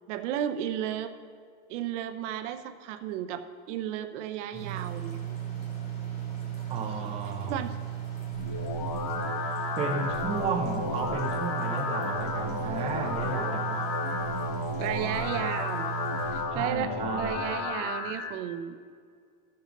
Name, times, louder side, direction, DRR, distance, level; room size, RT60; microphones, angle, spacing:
voice 1, 0.1-1.1 1.7-5.4 7.4-7.8 9.4-9.5 14.8-15.9 16.3-18.8, right 10 dB, 70° right, 9 dB, 0.8 m, -34 dB
sound 1, 4.5-16.4, right 10 dB, 25° left, 1.9 m, -36 dB
voice 2, 6.7-7.6 9.8-13.9 16.5-17.4, right 4 dB, 15° right, 1 dB, 0.6 m, -33 dB
sound 2, 8.3-18.3, left 4 dB, 45° left, 1.2 m, -33 dB
13.5 x 7.0 x 3.8 m, 2.1 s
supercardioid pair, 170°, 38 cm